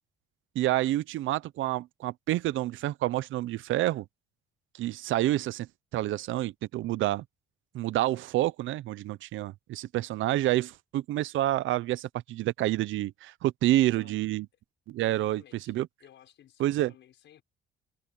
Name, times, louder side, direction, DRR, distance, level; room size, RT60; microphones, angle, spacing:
voice 1, 0.6-4.0 4.8-5.7 5.9-7.2 7.7-14.5 14.9-15.4 15.7-15.9 16.6-16.9, right 15 dB, 80° right, 0.6 m, -28 dB
voice 2, 13.8-14.2 15.0-15.7 16.0-17.4, left 11 dB, 70° left, 6.0 m, -56 dB
cardioid pair, 120°, 20 cm